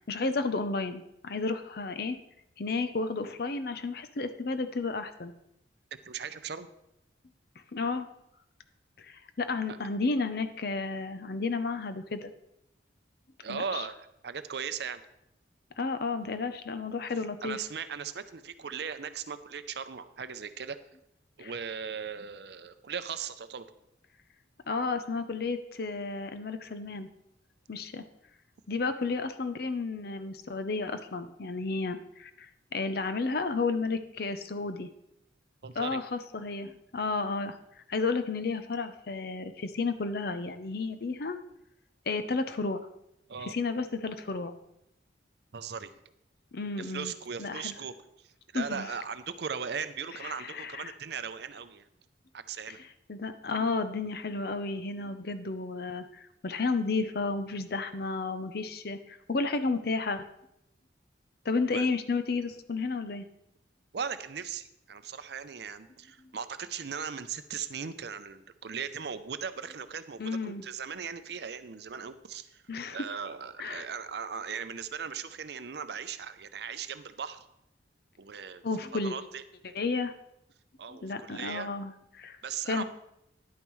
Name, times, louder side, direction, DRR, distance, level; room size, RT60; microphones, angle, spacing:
voice 1, 0.0-2.2 2.6-5.3 7.7-8.1 9.0-12.3 13.5-13.8 15.8-17.6 21.4-21.5 24.7-27.1 27.7-28.0 28.7-32.3 32.7-34.9 35.8-37.6 37.9-41.4 42.1-42.8 43.5-44.5 46.5-47.1 47.4-47.7 48.5-48.9 50.2-50.9 53.1-60.2 61.4-63.3 70.2-70.6 72.7-73.0 73.6-73.8 78.6-79.1 79.8-80.1 80.9-82.4 82.7-82.8, left 3 dB, 55° left, 10 dB, 0.6 m, -32 dB
voice 2, 6.0-6.7 13.4-15.0 17.4-20.8 21.4-23.7 35.6-36.0 43.3-43.6 45.5-45.9 46.8-51.9 52.3-52.8 61.7-61.9 63.9-72.6 72.9-77.5 78.2-78.6 79.0-79.8 80.8-81.7 82.4-82.8, right 6 dB, 60° right, 12 dB, 0.5 m, -38 dB
10.5 x 8.9 x 3.1 m, 0.81 s
head